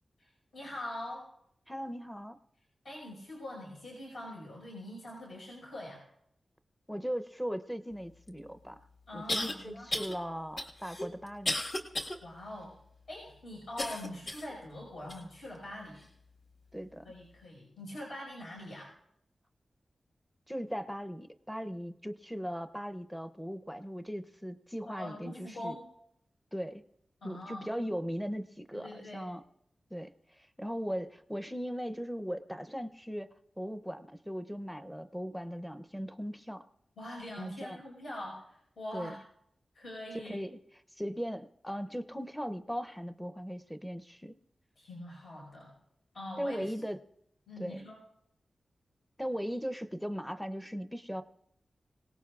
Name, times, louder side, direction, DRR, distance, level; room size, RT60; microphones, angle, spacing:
voice 1, 0.2-1.3 2.8-6.0 9.1-9.9 12.2-12.8 13.1-16.1 17.0-18.9 24.9-25.8 27.2-27.7 28.7-29.3 37.0-39.2 39.7-40.4 44.8-45.7 46.1-46.7 47.5-48.0, left 1 dB, 70° left, -3 dB, 5.0 m, -43 dB
voice 2, 1.7-2.4 6.9-8.8 9.1-11.6 16.7-17.0 20.5-25.7 26.5-26.8 27.2-29.4 29.9-30.1 30.4-33.3 33.6-36.6 37.4-37.8 38.9-39.1 40.2-40.5 41.0-44.4 46.4-47.0 47.6-47.8 49.2-51.2, equal, ahead, 10 dB, 0.6 m, -38 dB
sound 1, 8.3-8.4 9.3-9.5 9.9-10.2 10.6-12.2 12.6-12.7 13.8-14.5 15.1-15.2 16.0-16.1, left 1 dB, 50° left, 1.7 m, -34 dB
26.0 x 18.0 x 2.4 m, 0.76 s
wide cardioid pair, 140°, 0 cm